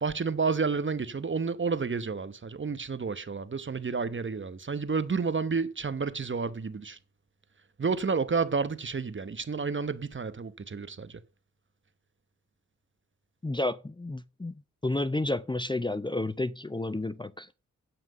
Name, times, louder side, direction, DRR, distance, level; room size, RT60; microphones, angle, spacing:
voice 1, 0.0-7.0 7.8-11.2, right 5 dB, 40° right, 1.1 m, -30 dB
voice 2, 13.4-14.5 14.8-17.5, left 2 dB, 15° left, 0.6 m, -31 dB
9.2 x 5.9 x 6.7 m
cardioid pair, 55°, 31 cm